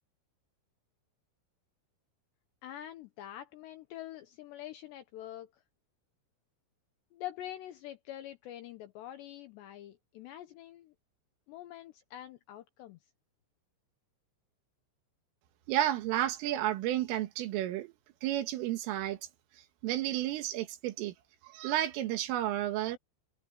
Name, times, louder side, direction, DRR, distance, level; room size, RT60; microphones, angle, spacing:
voice 1, 2.6-5.6 7.1-10.9 11.5-13.0, left 12 dB, 80° left, 2.6 m, -45 dB
voice 2, 15.7-17.9 18.2-19.2 19.8-21.1 21.4-23.0, right 13 dB, 75° right, 4.0 m, -31 dB
omnidirectional pair, 6.0 m